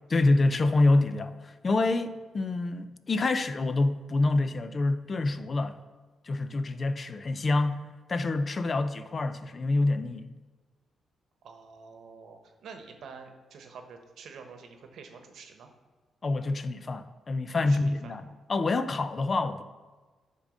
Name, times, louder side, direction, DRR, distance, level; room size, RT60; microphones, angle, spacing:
voice 1, 0.1-5.8 6.2-7.8 8.1-10.3 16.2-18.2 18.5-19.6, left 2 dB, 40° left, 0.5 m, -26 dB
voice 2, 11.4-15.7 17.6-18.3, right 5 dB, 75° right, 0.9 m, -47 dB
9.9 x 3.8 x 6.3 m
cardioid pair, 75°, 0 cm